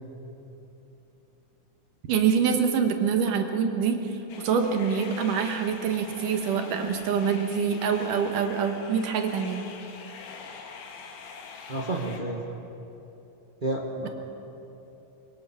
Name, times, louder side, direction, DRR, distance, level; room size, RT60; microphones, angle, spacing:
voice 1, 2.1-4.1 4.4-9.6, right 6 dB, 75° right, 5 dB, 2.9 m, -25 dB
sound 1, 4.3-12.2, left 5 dB, 75° left, 3.1 m, -44 dB
voice 2, 11.7-12.5 13.6-14.1, right 2 dB, 55° right, -1 dB, 0.5 m, -30 dB
24.0 x 21.0 x 5.9 m, 3.0 s
omnidirectional pair, 3.9 m